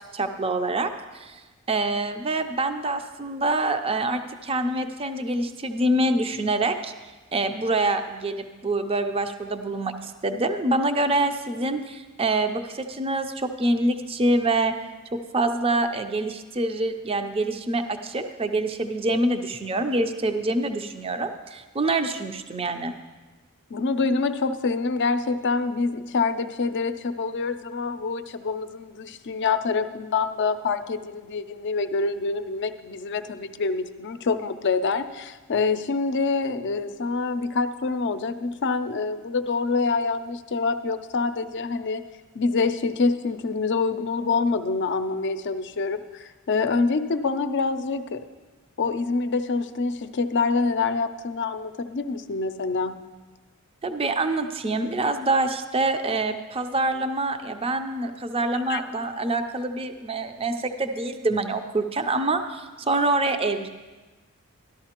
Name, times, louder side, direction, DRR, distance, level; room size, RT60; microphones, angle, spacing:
voice 1, 0.1-1.4 1.7-6.9 7.3-14.7 15.1-22.9 53.8-63.7, right 2 dB, 25° right, 8 dB, 0.5 m, -26 dB
voice 2, 23.7-42.0 42.3-48.3 48.8-53.0 58.7-58.8, left 4 dB, 55° left, 10 dB, 0.5 m, -26 dB
13.5 x 11.5 x 2.9 m, 1.2 s
head